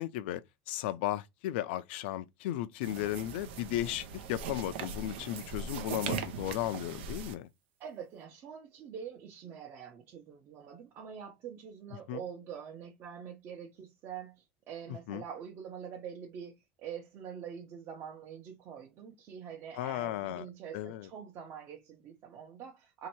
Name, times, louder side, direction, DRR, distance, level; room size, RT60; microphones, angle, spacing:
voice 1, 0.0-7.5 12.1-12.2 15.1-15.2 19.8-20.5 20.7-21.1, left 14 dB, 80° left, 0.4 m, -35 dB
sound 1, 2.8-7.3, right 6 dB, 90° right, 0.8 m, -40 dB
voice 2, 7.8-16.5 16.8-23.1, right 8 dB, 40° right, 0.9 m, -45 dB
3.1 x 2.9 x 4.5 m
supercardioid pair, 145°, 6 cm